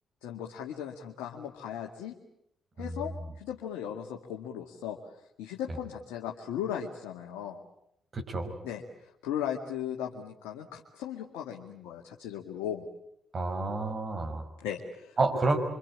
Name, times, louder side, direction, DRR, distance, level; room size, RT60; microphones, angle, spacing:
voice 1, 0.2-2.1 2.8-5.0 5.4-7.6 8.6-12.8 14.6-15.2, left 9 dB, 80° left, 0 dB, 2.1 m, -37 dB
voice 2, 8.1-8.5 13.3-14.5 15.2-15.6, right 3 dB, 45° right, 4 dB, 5.9 m, -29 dB
26.0 x 25.0 x 8.9 m, 0.76 s
hypercardioid pair, 45°, 0 cm